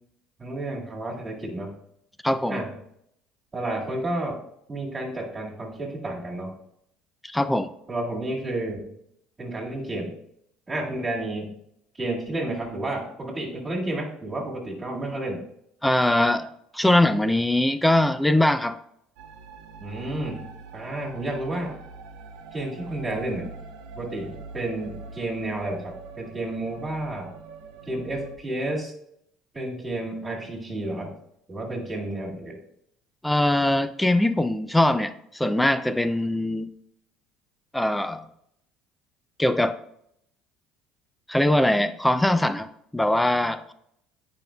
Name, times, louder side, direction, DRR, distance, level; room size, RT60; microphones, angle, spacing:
voice 1, 0.4-1.7 2.5-2.7 3.5-4.4 4.7-6.5 7.9-8.8 9.4-10.2 10.7-11.5 11.9-15.4 19.8-21.8 22.5-23.5 24.0-27.3 27.9-28.9 29.5-31.2 31.5-32.6, right 1 dB, 30° right, -6 dB, 2.0 m, -31 dB
voice 2, 2.2-2.6 7.2-7.7 15.8-16.5 16.8-18.8 33.2-36.7 37.7-38.2 39.4-39.8 41.3-43.7, left 1 dB, 5° left, 11 dB, 0.4 m, -22 dB
sound 1, 19.2-28.4, right 4 dB, 75° right, 0.7 m, -43 dB
8.9 x 5.4 x 2.2 m, 0.74 s
hypercardioid pair, 75°, 0 cm